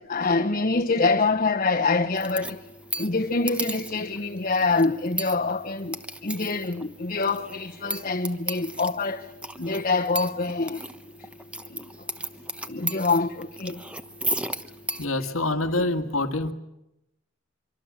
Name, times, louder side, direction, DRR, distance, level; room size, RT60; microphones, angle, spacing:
voice 1, 0.1-2.6 3.0-5.9 6.2-9.2 9.6-10.8 11.7-11.8 12.7-13.8, left 3 dB, 40° left, 1.1 m, -25 dB
sound 1, 2.1-15.0, right 1 dB, 5° right, 1.1 m, -36 dB
voice 2, 15.0-16.5, left 2 dB, 85° left, 1.8 m, -26 dB
25.0 x 25.0 x 7.4 m
head